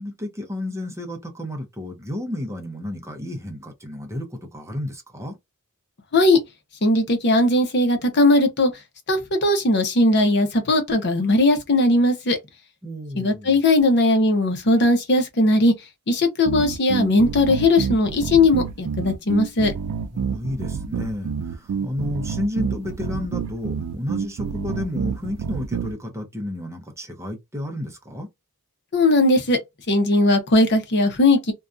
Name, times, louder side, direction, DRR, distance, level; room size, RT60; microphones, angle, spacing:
voice 1, 0.0-5.4 12.8-13.6 20.1-28.3, left 1 dB, 15° right, 0.6 m, -31 dB
voice 2, 6.8-8.7 9.1-12.4 13.2-15.7 16.1-19.7 28.9-29.6 29.9-31.5, left 2 dB, 50° left, 0.7 m, -18 dB
sound 1, 16.4-25.9, right 6 dB, 80° right, 0.3 m, -28 dB
2.6 x 2.2 x 2.4 m
head